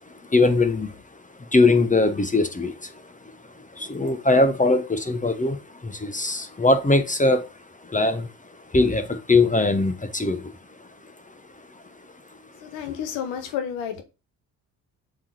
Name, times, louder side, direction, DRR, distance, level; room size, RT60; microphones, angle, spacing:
voice 1, 0.1-1.0 1.4-3.1 3.5-7.4 7.8-8.3 8.7-10.5 10.8-10.9, left 2 dB, 15° left, 0.9 m, -21 dB
voice 2, 12.6-14.0, left 8 dB, 75° left, 1.1 m, -30 dB
7.4 x 3.1 x 4.3 m
hypercardioid pair, 40°, 46 cm